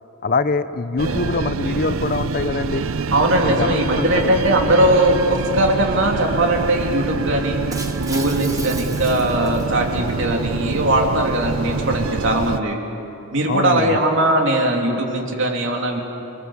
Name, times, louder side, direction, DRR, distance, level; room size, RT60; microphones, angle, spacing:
voice 1, 0.2-2.8 3.4-4.3 13.5-14.0, left 3 dB, 45° left, 13 dB, 0.7 m, -23 dB
sound 1, 1.0-12.6, right 4 dB, 80° right, 0.7 m, -26 dB
voice 2, 3.1-7.6 8.0-12.8 13.3-16.0, right 1 dB, 60° right, 1 dB, 3.2 m, -19 dB
Shatter, 7.7-10.1, right 3 dB, 15° right, 1.3 m, -35 dB
29.0 x 20.0 x 7.4 m, 2.8 s
head